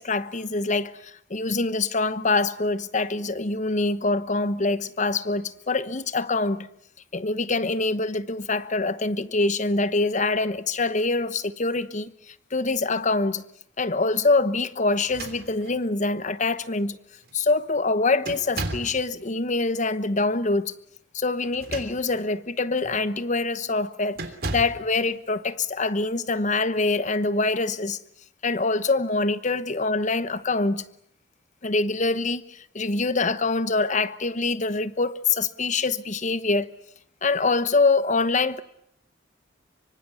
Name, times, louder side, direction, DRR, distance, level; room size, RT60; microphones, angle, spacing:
voice 1, 0.0-6.7 7.1-12.1 12.5-13.4 13.8-17.0 17.3-20.7 21.1-24.2 24.5-28.0 28.4-30.9 31.6-36.7 37.2-38.6, left 3 dB, 40° left, 1.1 m, -25 dB
sound 1, 15.0-15.9 16.8-16.9 17.2-17.6 18.2-19.0 21.4-22.3 22.8-23.0 24.1-24.9, right 2 dB, 55° right, 3.3 m, -35 dB
25.5 x 24.5 x 8.5 m
head